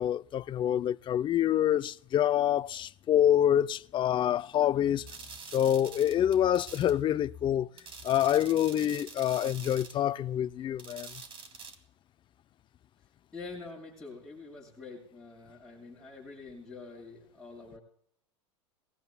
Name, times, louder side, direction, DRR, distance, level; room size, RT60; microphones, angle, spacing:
voice 1, 0.0-5.1 5.5-7.7 8.0-11.1, left 11 dB, 35° left, 0.5 m, -26 dB
sound 1, 5.1-7.0 7.8-10.0 10.8-11.7, right 5 dB, 35° right, 2.5 m, -46 dB
voice 2, 13.3-17.8, left 3 dB, 5° left, 6.6 m, -46 dB
22.0 x 19.5 x 2.2 m
hypercardioid pair, 95°, 15 cm